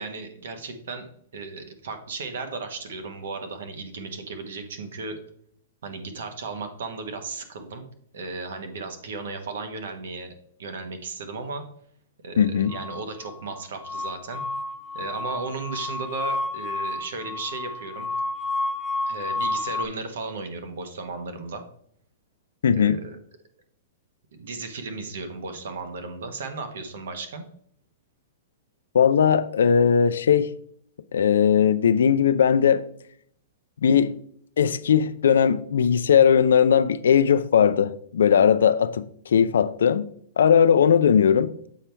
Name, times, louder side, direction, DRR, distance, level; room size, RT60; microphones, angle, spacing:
voice 1, 0.0-5.2 5.8-7.8 8.1-10.3 10.6-11.6 12.2-14.4 14.9-18.1 19.1-21.6 22.7-23.2 24.3-27.4, right 4 dB, 75° right, 7 dB, 1.1 m, -35 dB
voice 2, 12.4-12.8 22.6-23.0 28.9-30.5 31.1-32.9 33.8-34.1 34.6-40.1 40.4-41.5, left 7 dB, 85° left, 14 dB, 0.4 m, -19 dB
sound 1, 12.7-19.9, left 2 dB, 10° left, 0.3 m, -31 dB
7.2 x 4.4 x 3.3 m, 0.66 s
hypercardioid pair, 145°, 0 cm